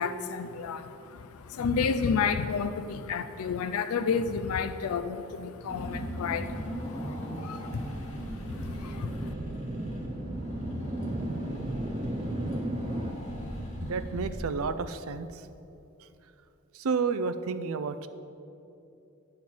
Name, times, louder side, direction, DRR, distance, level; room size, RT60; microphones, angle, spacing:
voice 1, 0.0-9.3, left 5 dB, 80° left, 10 dB, 0.4 m, -31 dB
sound 1, 5.4-13.1, right 1 dB, 25° right, 0.5 m, -37 dB
Car / Engine, 5.7-14.9, equal, 35° left, 1.6 m, -37 dB
voice 2, 13.8-15.5 16.0-16.1 16.7-18.1, right 5 dB, 70° right, 12 dB, 0.5 m, -31 dB
10.5 x 4.4 x 7.4 m, 2.8 s
head